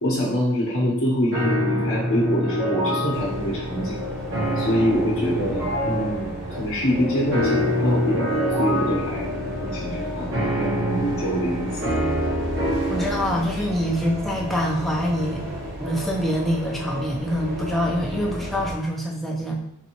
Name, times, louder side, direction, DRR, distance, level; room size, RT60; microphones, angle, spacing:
voice 1, 0.0-4.0 4.6-9.2 9.6-11.9 13.6-13.7, equal, 60° left, -5 dB, 0.8 m, -25 dB
sound 1, 1.3-13.3, equal, 65° right, 1.4 m, -26 dB
sound 2, 3.1-18.7, equal, 50° right, 0.8 m, -33 dB
voice 2, 12.9-15.4 15.8-19.6, equal, ahead, -2 dB, 0.4 m, -25 dB
4.0 x 2.6 x 2.9 m, 0.75 s
head